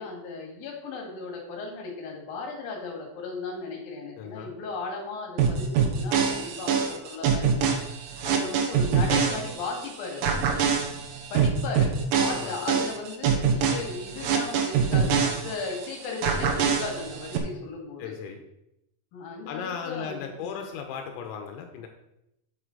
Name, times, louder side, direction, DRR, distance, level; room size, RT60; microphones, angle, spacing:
voice 1, 0.0-7.8 8.2-10.4 11.3-18.1 19.1-20.5, left 3 dB, 60° left, 0 dB, 3.4 m, -36 dB
voice 2, 4.2-4.5 12.3-12.6 18.0-18.4 19.5-21.9, left 7 dB, 85° left, 4 dB, 3.1 m, -36 dB
sound 1, 5.4-9.9 10.2-15.9 16.2-17.4, right 6 dB, 80° right, 1.9 m, -24 dB
8.3 x 7.8 x 3.9 m, 0.84 s
omnidirectional pair, 5.2 m